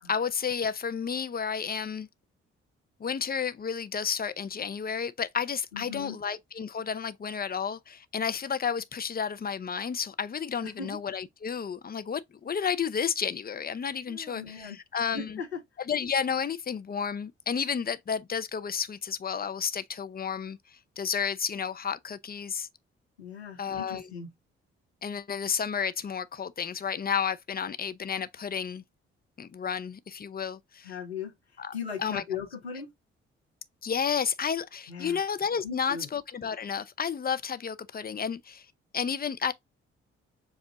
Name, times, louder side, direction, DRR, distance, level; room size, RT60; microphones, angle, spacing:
voice 1, 0.1-2.1 3.0-15.4 15.9-22.7 23.6-24.0 25.0-28.8 29.4-30.9 31.6-31.7 32.0-32.2 33.8-38.7 38.9-39.5, left 7 dB, 30° left, 0.7 m, -31 dB
voice 2, 5.7-6.2 10.6-11.0 14.1-14.8 15.1-15.6 23.2-24.3 30.8-32.9 34.9-35.2 35.6-36.1, left 6 dB, 90° left, 0.9 m, -38 dB
7.2 x 2.4 x 2.8 m
figure-of-eight pair, 40°, 31 cm